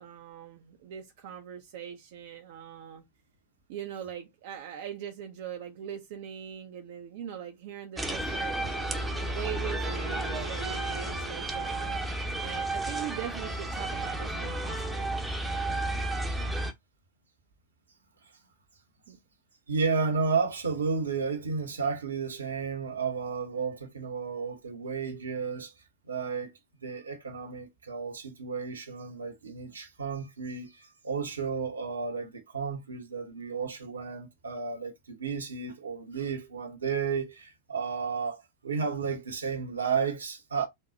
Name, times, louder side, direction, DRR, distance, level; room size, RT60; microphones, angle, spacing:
voice 1, 0.0-3.0 3.7-12.0 12.4-15.1 19.1-19.2, right 9 dB, 50° right, 0.6 m, -41 dB
sound 1, 8.0-16.7, right 2 dB, 5° right, 0.8 m, -32 dB
Wind instrument woodwind instrument, 8.5-12.6, right 3 dB, 70° left, 1.3 m, -45 dB
voice 2, 19.7-25.7 26.1-26.5 26.8-40.7, right 5 dB, 75° right, 1.0 m, -32 dB
4.4 x 2.2 x 3.9 m
figure-of-eight pair, 90°, 0 cm